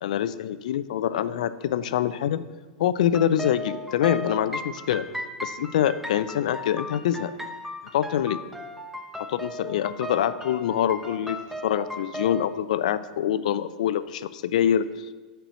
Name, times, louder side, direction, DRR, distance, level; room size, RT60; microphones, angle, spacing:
voice 1, 0.0-2.4 2.8-5.0 5.4-7.3 7.9-8.4 9.3-11.4 11.6-15.1, left 10 dB, 75° left, 14 dB, 0.5 m, -25 dB
sound 1, 3.1-12.5, left 1 dB, 5° right, 0.8 m, -36 dB
9.1 x 4.5 x 6.8 m, 1.3 s
supercardioid pair, 125°, 4 cm